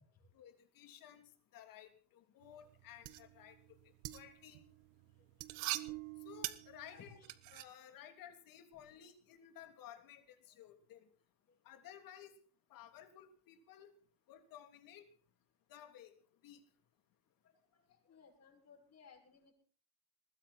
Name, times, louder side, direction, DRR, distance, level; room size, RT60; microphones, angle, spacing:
voice 1, 0.3-3.8 4.1-4.6 6.2-7.2 7.5-11.1 11.6-12.3 12.7-13.9 14.3-15.1 15.7-16.1 16.4-16.6, left 10 dB, 55° left, 7 dB, 3.2 m, -56 dB
sound 1, 2.4-7.6, right 18 dB, 90° right, 1.3 m, -44 dB
voice 2, 6.9-7.3 18.1-19.5, left 5 dB, 40° left, 2 dB, 7.0 m, -60 dB
20.5 x 15.5 x 4.4 m, 0.42 s
supercardioid pair, 110°, 40 cm